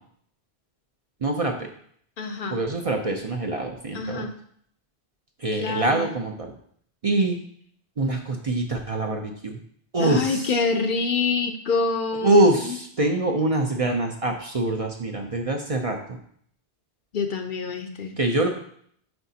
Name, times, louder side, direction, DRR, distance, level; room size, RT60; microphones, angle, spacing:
voice 1, 1.2-1.7 2.5-4.3 5.4-6.5 7.0-7.4 8.0-9.6 9.9-10.5 12.2-16.2 18.2-18.5, right 2 dB, 40° right, 3 dB, 0.6 m, -24 dB
voice 2, 2.2-2.6 3.9-4.3 5.5-6.1 10.0-12.8 17.1-18.2, left 4 dB, 60° left, 5 dB, 0.8 m, -26 dB
7.9 x 4.9 x 2.8 m, 0.64 s
omnidirectional pair, 1.0 m